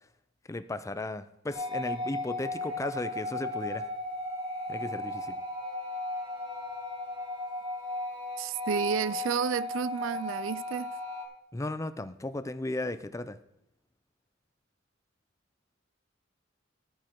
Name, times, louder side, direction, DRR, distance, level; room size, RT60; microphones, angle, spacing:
voice 1, 0.5-3.9 4.7-5.4 11.5-13.4, left 2 dB, 15° left, 0.5 m, -35 dB
sound 1, 1.5-11.3, left 2 dB, 25° right, 2.0 m, -35 dB
voice 2, 8.4-10.9, right 7 dB, 70° right, 0.4 m, -31 dB
11.0 x 9.2 x 4.6 m
head